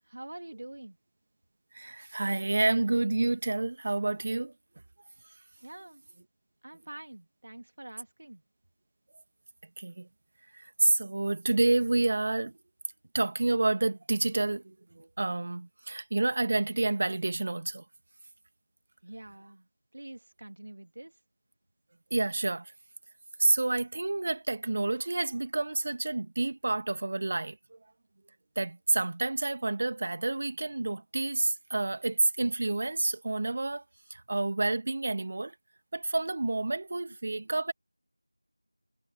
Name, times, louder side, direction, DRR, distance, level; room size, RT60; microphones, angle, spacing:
voice 1, 0.1-1.0 5.6-6.0 6.6-8.4 19.0-19.7 19.9-21.1, right 1 dB, 45° right, 2.8 m, -45 dB
voice 2, 1.7-4.5 5.3-5.4 9.8-10.1 10.5-12.6 13.1-17.8 22.1-22.7 23.4-27.8 28.6-33.8 34.1-35.6 35.9-37.7, right 2 dB, 30° right, 1.9 m, -29 dB
figure-of-eight pair, 175°, 0 cm